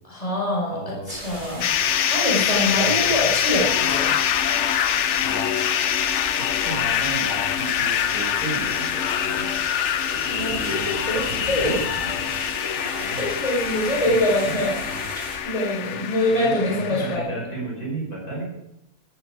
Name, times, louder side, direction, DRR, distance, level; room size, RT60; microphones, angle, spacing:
voice 1, 0.1-1.6 2.1-4.1 10.3-11.8 12.6-14.8 15.4-17.4, left 1 dB, 25° left, -4 dB, 5.2 m, -24 dB
voice 2, 0.7-1.1 2.7-3.1 5.1-5.5 6.4-9.6 10.5-12.3 13.0-13.4 13.9-15.0 16.3-18.5, right 2 dB, 85° left, -2 dB, 6.2 m, -34 dB
sound 1, 1.1-15.4, right 1 dB, 40° right, 5.0 m, -36 dB
sound 2, 1.6-17.2, left 9 dB, 60° left, 0.9 m, -24 dB
17.0 x 13.5 x 4.9 m, 0.82 s
omnidirectional pair, 1.5 m